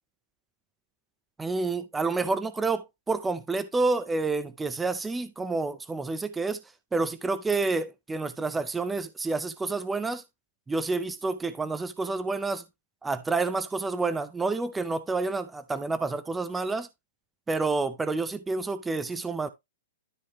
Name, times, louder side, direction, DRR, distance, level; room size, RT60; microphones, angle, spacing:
voice 1, 1.4-6.6 6.9-10.2 10.7-12.6 13.0-16.9 17.5-19.5, right 3 dB, 5° right, 0.4 m, -29 dB
12.5 x 4.8 x 2.9 m
hypercardioid pair, 180°, 0 cm